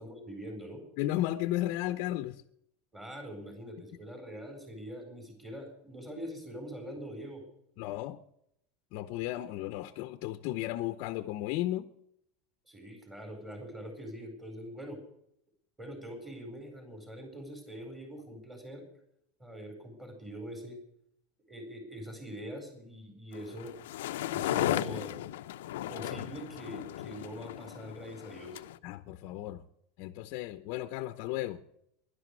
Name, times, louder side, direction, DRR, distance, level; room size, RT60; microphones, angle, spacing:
voice 1, 0.0-0.8 2.9-7.4 12.7-15.0 15.8-18.8 19.4-20.8 21.5-23.7 24.3-25.1 25.9-28.6, equal, 10° right, 4.8 m, -43 dB
voice 2, 1.0-2.4 7.8-8.2 8.9-11.9 28.8-29.6 30.0-31.6, left 15 dB, 55° left, 0.8 m, -34 dB
sound 1, 23.3-28.8, left 14 dB, 90° left, 0.7 m, -35 dB
11.5 x 11.5 x 9.7 m
supercardioid pair, 155°, 0 cm